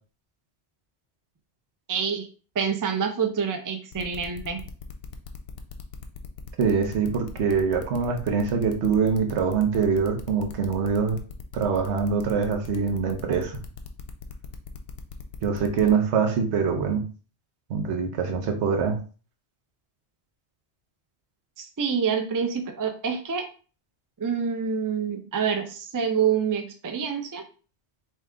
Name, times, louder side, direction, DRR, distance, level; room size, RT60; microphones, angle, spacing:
voice 1, 1.9-2.3 2.6-4.6 21.6-23.5 24.2-27.4, right 6 dB, 35° right, 5 dB, 0.3 m, -27 dB
sound 1, 3.9-15.9, left 7 dB, 70° left, 0.8 m, -41 dB
voice 2, 6.6-11.2 11.5-13.6 15.4-17.0 17.7-19.0, right 6 dB, 90° right, 4 dB, 1.1 m, -24 dB
3.4 x 2.9 x 3.6 m, 0.37 s
omnidirectional pair, 1.1 m